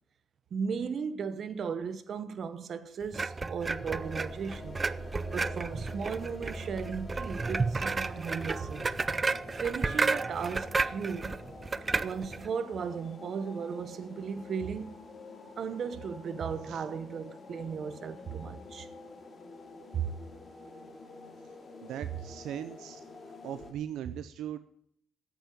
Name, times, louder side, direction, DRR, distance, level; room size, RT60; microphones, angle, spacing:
voice 1, 0.5-4.8 5.3-8.9 9.5-11.4 12.0-14.9 15.6-18.9 19.9-20.1, right 6 dB, 55° right, 1.0 m, -36 dB
sound 1, 3.1-12.5, right 4 dB, 30° right, 0.5 m, -32 dB
sound 2, 3.6-9.3, equal, 5° left, 2.8 m, -47 dB
sound 3, 4.0-23.7, left 3 dB, 40° left, 2.5 m, -48 dB
voice 2, 21.8-24.6, right 10 dB, 85° right, 0.5 m, -40 dB
8.8 x 8.3 x 8.9 m
cardioid pair, 90°, 0 cm